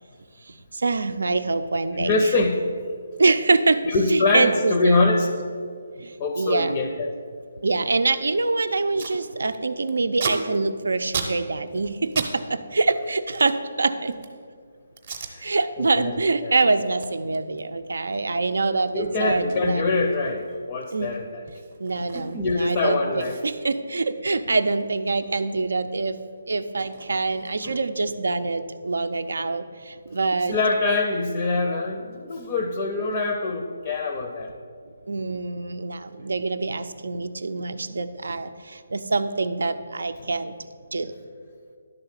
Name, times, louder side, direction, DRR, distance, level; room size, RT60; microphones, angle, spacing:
voice 1, 0.5-2.2 3.2-3.8 4.1-5.1 6.0-6.8 7.6-14.2 15.4-19.8 20.9-21.1 21.8-26.2 26.5-30.6 35.1-40.5 40.9-41.1, right 3 dB, 85° right, 10 dB, 0.5 m, -25 dB
voice 2, 1.9-2.6 3.8-5.3 6.2-7.1 15.3-15.5 15.8-16.1 16.4-16.5 18.9-21.4 22.1-23.4 27.6-27.8 30.5-34.5, left 3 dB, 15° left, 4 dB, 0.5 m, -24 dB
Packing tape duct tape, 8.9-9.2 9.5-12.3 12.6-14.4 15.0-15.3 15.8-16.0 16.4-22.6 22.8-22.9 23.2-25.6 25.8-27.8, right 5 dB, 30° right, 0.8 m, -37 dB
11.0 x 3.9 x 7.3 m, 2.1 s
hypercardioid pair, 180°, 0 cm